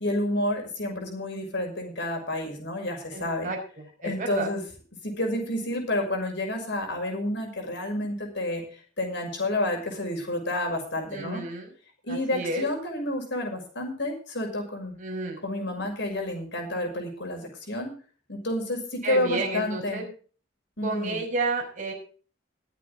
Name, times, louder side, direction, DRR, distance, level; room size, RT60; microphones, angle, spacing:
voice 1, 0.0-3.5 4.0-4.6 5.0-8.6 9.0-11.4 12.0-14.9 15.4-17.9 18.3-20.0 20.8-21.2, left 1 dB, 65° left, 3 dB, 5.9 m, -30 dB
voice 2, 3.1-4.5 11.1-11.7 12.1-12.6 15.0-15.4 19.0-20.1 20.8-21.9, right 2 dB, 45° right, 1 dB, 5.5 m, -31 dB
21.5 x 8.5 x 3.7 m, 0.39 s
head